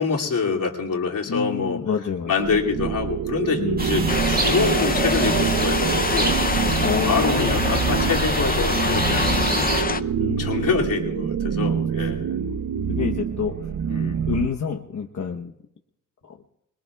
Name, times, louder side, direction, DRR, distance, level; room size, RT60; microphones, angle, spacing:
voice 1, 0.0-1.8 2.3-6.4 7.1-9.7 10.4-12.3 13.9-14.2, left 5 dB, 80° left, -2 dB, 2.7 m, -26 dB
voice 2, 1.3-2.3 3.5-4.2 6.8-7.7 10.2-10.8 12.9-14.0 14.3-15.5 16.2-16.4, left 7 dB, 65° left, 1 dB, 1.1 m, -28 dB
sound 1, 2.4-14.5, right 7 dB, 75° right, 0.7 m, -26 dB
sound 2, 3.8-9.8, right 2 dB, 30° right, 1.9 m, -27 dB
sound 3, 4.1-10.0, left 5 dB, 30° left, 0.6 m, -26 dB
26.0 x 22.0 x 2.3 m, 0.81 s
wide cardioid pair, 130°, 32 cm